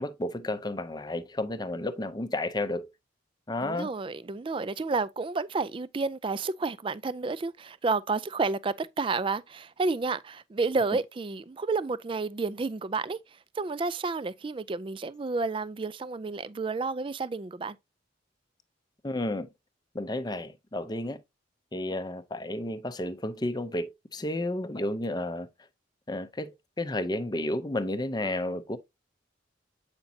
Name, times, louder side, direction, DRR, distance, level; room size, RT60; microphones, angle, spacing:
voice 1, 0.0-2.9 3.5-3.9 19.0-19.5 19.9-21.2 21.7-25.5 26.1-28.8, left 1 dB, 20° left, 0.5 m, -32 dB
voice 2, 3.6-13.2 13.6-17.8, right 3 dB, 25° right, 0.3 m, -30 dB
8.3 x 5.2 x 2.7 m
head